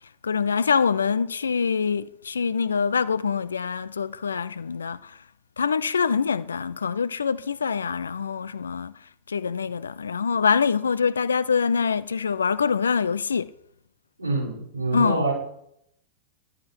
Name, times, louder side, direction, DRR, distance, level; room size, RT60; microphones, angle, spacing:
voice 1, 0.2-5.0 5.6-8.9 9.3-13.5 14.9-15.2, left 6 dB, 70° left, 0.5 m, -24 dB
voice 2, 14.2-15.3, right 3 dB, 85° right, 5.0 m, -26 dB
11.0 x 11.0 x 4.7 m
figure-of-eight pair, 90°, 0 cm